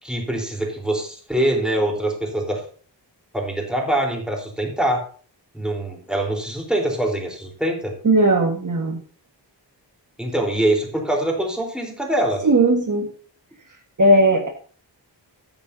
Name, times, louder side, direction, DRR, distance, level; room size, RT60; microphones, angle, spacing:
voice 1, 0.0-2.6 3.3-5.1 5.5-8.0 10.2-12.4, right 1 dB, ahead, 0 dB, 3.9 m, -24 dB
voice 2, 8.0-9.0 12.4-13.1 14.0-14.5, right 1 dB, 45° right, 2 dB, 1.7 m, -17 dB
14.5 x 9.9 x 2.8 m, 0.42 s
wide cardioid pair, 155°, 43 cm